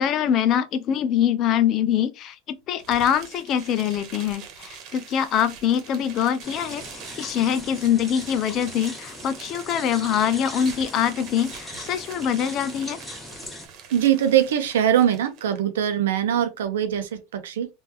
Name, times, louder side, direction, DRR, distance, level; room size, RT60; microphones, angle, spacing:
voice 1, 0.0-2.4 2.7-13.0, left 9 dB, 50° left, 0.5 m, -24 dB
sound 1, 2.8-15.6, right 7 dB, 55° right, 1.1 m, -43 dB
sound 2, 6.4-13.7, left 1 dB, 15° left, 1.7 m, -40 dB
voice 2, 13.9-17.7, right 10 dB, 85° right, 0.7 m, -22 dB
3.6 x 2.6 x 2.8 m
hypercardioid pair, 95°, 0 cm